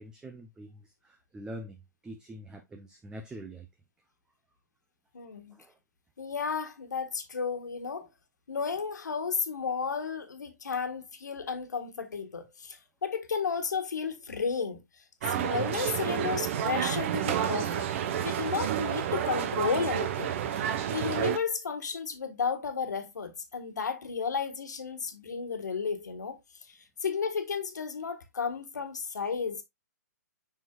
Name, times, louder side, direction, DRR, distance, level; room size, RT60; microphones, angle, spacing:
voice 1, 0.0-3.7 5.5-5.7, right 1 dB, 10° right, 0.7 m, -45 dB
voice 2, 5.1-5.6 6.2-8.1 8.5-17.9 18.2-29.6, left 5 dB, 80° left, 1.7 m, -33 dB
sound 1, 15.2-21.4, right 10 dB, 45° right, 1.0 m, -30 dB
6.9 x 6.0 x 2.4 m
hypercardioid pair, 135°, 9 cm